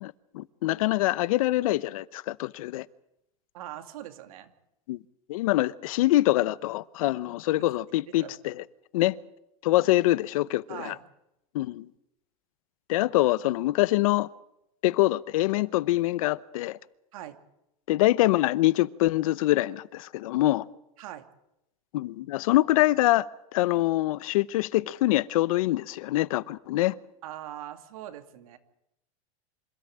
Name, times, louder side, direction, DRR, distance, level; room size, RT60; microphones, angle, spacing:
voice 1, 0.0-2.9 4.9-5.0 5.3-8.6 8.9-9.2 9.6-10.9 11.5-11.9 12.9-14.3 14.8-16.8 17.9-20.6 21.9-26.9, left 17 dB, 75° left, 0.8 m, -24 dB
voice 2, 3.5-4.5 8.0-8.3 10.7-11.1 17.1-17.4 21.0-21.3 27.2-28.6, right 12 dB, 75° right, 2.4 m, -41 dB
26.5 x 13.0 x 8.6 m
supercardioid pair, 140°, 18 cm